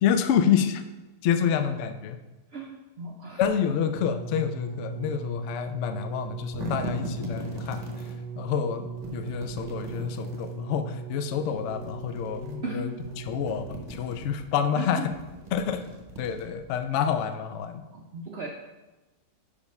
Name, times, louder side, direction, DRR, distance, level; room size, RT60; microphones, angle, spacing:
voice 1, 0.0-0.8 1.2-2.2 3.4-7.8 8.4-15.0 15.5-15.8 16.2-17.8, left 8 dB, 65° left, 8 dB, 0.7 m, -28 dB
voice 2, 2.5-3.4 12.6-12.9 14.8-15.0 17.9-18.5, right 2 dB, 55° right, 1 dB, 0.7 m, -36 dB
sound 1, 4.0-14.1 14.9-15.0, right 4 dB, 80° right, 1.2 m, -38 dB
sound 2, 6.2-8.2 9.0-10.6 11.5-12.6 12.9-14.4 15.0-16.8, right 1 dB, 30° right, 1.0 m, -39 dB
5.1 x 5.1 x 5.2 m, 1.1 s
omnidirectional pair, 1.7 m